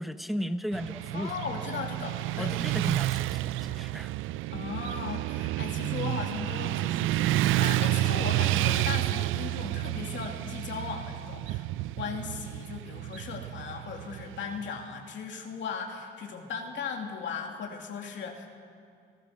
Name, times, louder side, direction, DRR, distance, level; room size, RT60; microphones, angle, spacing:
voice 1, 0.0-1.3 2.4-4.1, equal, ahead, 9 dB, 1.0 m, -35 dB
Motorcycle / Traffic noise roadway noise, 0.7-14.8, right 16 dB, 85° right, 0.4 m, -30 dB
voice 2, 1.1-2.5 4.5-11.7 12.0-18.5, left 6 dB, 70° left, 2 dB, 2.5 m, -37 dB
28.0 x 17.0 x 6.5 m, 2.3 s
cardioid pair, 90°, 20 cm